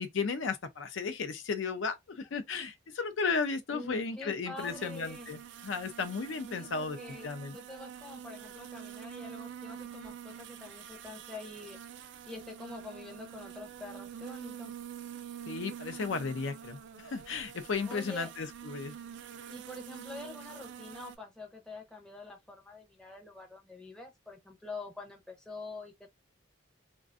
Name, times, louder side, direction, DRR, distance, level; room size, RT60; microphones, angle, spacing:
voice 1, 0.0-7.0 7.2-7.6 15.5-18.9, left 4 dB, 75° left, 0.5 m, -34 dB
voice 2, 3.7-5.3 6.5-7.3 7.5-11.8 12.3-14.7 17.9-18.3 19.5-26.1, left 2 dB, 5° left, 0.5 m, -46 dB
sound 1, 4.6-21.2, right 9 dB, 65° right, 0.3 m, -46 dB
2.5 x 2.2 x 2.4 m
head